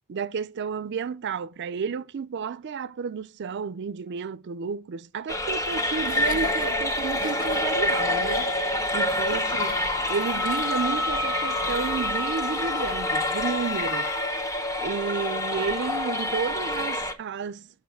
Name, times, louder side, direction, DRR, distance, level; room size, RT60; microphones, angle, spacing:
voice 1, 0.1-14.1 14.8-17.7, right 6 dB, 50° right, 0.4 m, -32 dB
sound 1, 5.3-17.1, left 1 dB, 15° left, 0.8 m, -27 dB
Laughter, 6.0-11.0, left 5 dB, 40° left, 0.4 m, -41 dB
Wind instrument woodwind instrument, 10.1-14.3, left 3 dB, 55° left, 0.8 m, -33 dB
6.4 x 6.0 x 7.0 m
head